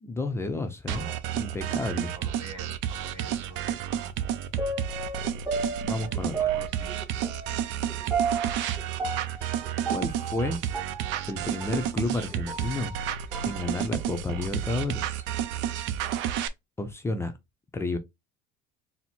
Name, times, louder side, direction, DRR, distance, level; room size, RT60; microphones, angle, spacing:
voice 1, 0.0-1.1 1.3-2.1 5.8-6.4 9.9-10.6 11.3-13.0 13.4-15.2 16.8-17.3 17.7-18.0, left 2 dB, 15° left, 0.5 m, -31 dB
voice 2, 0.9-1.3 2.1-3.8 6.4-7.1, right 3 dB, 30° right, 1.9 m, -45 dB
sound 1, 0.9-16.5, right 10 dB, 75° right, 0.6 m, -31 dB
sound 2, 4.6-11.8 12.3-13.6 14.0-14.1, right 5 dB, 10° right, 0.8 m, -33 dB
4.2 x 2.1 x 4.2 m
cardioid pair, 135°, 20 cm